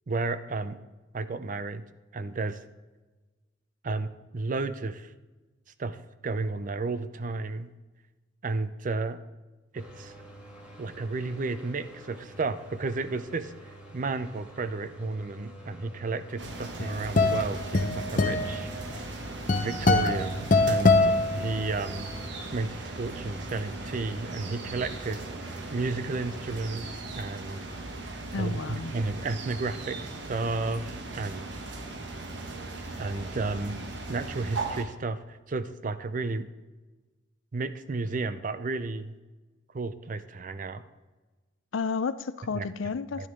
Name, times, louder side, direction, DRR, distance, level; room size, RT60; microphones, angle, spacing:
voice 1, 0.1-0.8 1.1-1.8 2.1-2.6 3.8-5.1 5.8-6.0 6.2-7.7 8.4-9.2 9.7-10.1 10.8-13.5 13.9-19.0 19.6-22.1 22.5-25.2 25.5-26.9 27.2-27.7 28.4-31.5 33.0-33.8 34.1-36.5 37.5-39.2 39.7-40.8 42.5-42.7 43.2-43.3, right 3 dB, 45° right, 12 dB, 0.5 m, -32 dB
sound 1, 9.7-26.7, right 1 dB, 5° right, 1.9 m, -48 dB
sound 2, 16.4-34.8, right 2 dB, 65° right, 1.2 m, -39 dB
sound 3, 16.5-22.0, left 2 dB, 40° left, 0.7 m, -24 dB
voice 2, 28.3-28.9 41.7-43.3, left 5 dB, 85° left, 14 dB, 0.5 m, -31 dB
12.5 x 10.0 x 3.7 m, 1.2 s
head